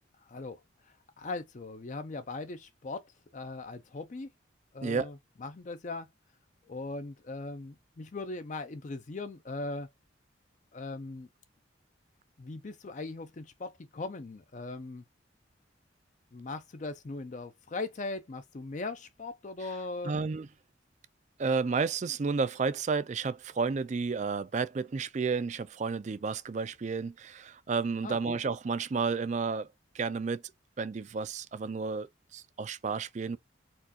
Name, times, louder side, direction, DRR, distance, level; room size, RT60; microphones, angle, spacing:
voice 1, 0.3-0.6 1.2-4.3 4.7-6.1 6.7-9.9 10.7-11.3 12.4-15.0 16.3-20.2 28.0-28.4, left 3 dB, 40° left, 0.4 m, -39 dB
voice 2, 20.0-20.5 21.4-29.7 29.9-30.4 30.8-33.4, right 4 dB, 35° right, 0.3 m, -31 dB
4.4 x 2.4 x 2.7 m
head